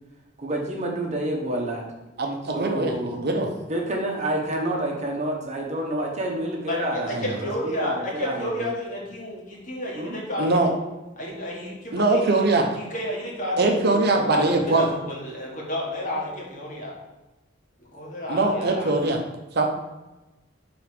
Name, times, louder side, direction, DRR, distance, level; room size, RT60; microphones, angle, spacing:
voice 1, 0.4-1.8 2.5-3.2 3.7-7.1 7.4-8.7 9.9-10.2, right 1 dB, 40° right, 0 dB, 1.0 m, -28 dB
voice 2, 2.2-3.5 7.1-7.3 10.4-10.7 11.9-12.7 13.6-14.9 18.3-19.2 19.5-19.7, right 2 dB, 60° right, 3 dB, 0.8 m, -22 dB
voice 3, 6.7-10.6 11.2-16.9 17.9-19.1, left 1 dB, 45° left, -3 dB, 1.6 m, -31 dB
5.0 x 3.9 x 5.0 m, 1.0 s
head